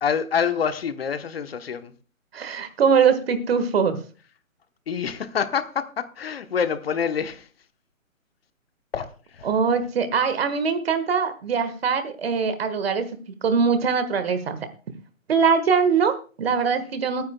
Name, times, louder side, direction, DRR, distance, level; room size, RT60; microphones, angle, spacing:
voice 1, 0.0-1.9 4.9-7.5 8.9-9.5, left 7 dB, 45° left, 1.0 m, -26 dB
voice 2, 2.3-4.0 9.4-13.0 13.4-14.6 15.3-17.2, right 6 dB, 45° right, 1.6 m, -22 dB
26.5 x 9.5 x 2.2 m
hypercardioid pair, 150°, 40 cm